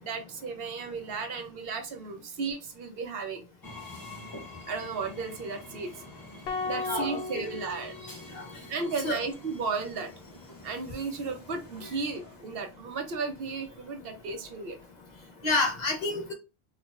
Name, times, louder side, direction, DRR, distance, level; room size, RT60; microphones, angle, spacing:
voice 1, 0.0-3.4 4.7-5.9 6.6-8.1 8.7-10.1 10.6-14.8, right 4 dB, 70° right, 0.8 m, -34 dB
Train, 3.6-12.8, left 2 dB, 25° left, 0.5 m, -48 dB
sound 1, 6.5-8.8, left 4 dB, 80° left, 0.8 m, -36 dB
voice 2, 6.8-7.5 8.3-8.5 9.0-9.2 15.4-16.3, left 2 dB, 45° left, 0.9 m, -29 dB
4.4 x 2.4 x 2.3 m
omnidirectional pair, 1.0 m